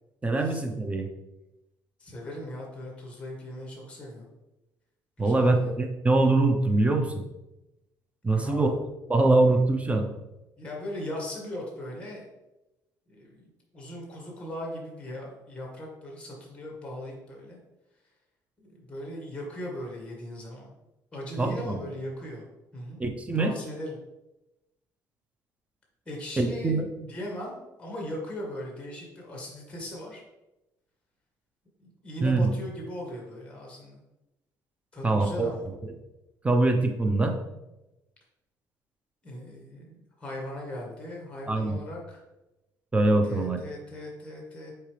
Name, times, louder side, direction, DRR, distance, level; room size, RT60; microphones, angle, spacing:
voice 1, 0.2-1.1 5.2-7.2 8.2-8.7 9.1-10.1 21.4-21.8 23.0-23.5 26.4-26.9 32.2-32.5 35.0-35.5 36.4-37.3 41.5-41.8 42.9-43.6, right 2 dB, 15° right, 4 dB, 0.7 m, -23 dB
voice 2, 2.0-4.3 5.2-5.7 8.3-8.7 10.6-12.3 13.1-17.6 18.6-20.7 21.1-22.4 22.7-23.0 23.4-24.0 26.1-30.2 31.8-34.0 34.9-35.7 39.2-42.2 43.2-44.7, left 1 dB, 15° left, -2 dB, 1.7 m, -39 dB
7.1 x 4.6 x 3.3 m, 0.98 s
cardioid pair, 120°, 8 cm